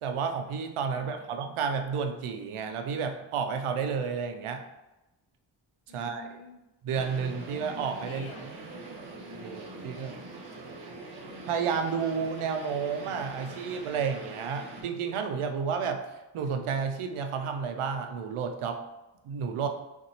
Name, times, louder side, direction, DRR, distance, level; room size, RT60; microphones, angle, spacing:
voice 1, 0.0-4.6 5.9-6.3 6.8-8.3 9.4-10.2 11.4-18.8 19.2-19.7, right 6 dB, 80° right, 6 dB, 0.6 m, -31 dB
voice 2, 0.9-1.3 5.9-6.6 8.0-9.0, left 3 dB, 70° left, 3 dB, 0.8 m, -50 dB
sound 1, 6.9-14.8, right 2 dB, 50° right, 0.9 m, -43 dB
4.1 x 2.6 x 2.8 m, 0.99 s
cardioid pair, 50°, 50 cm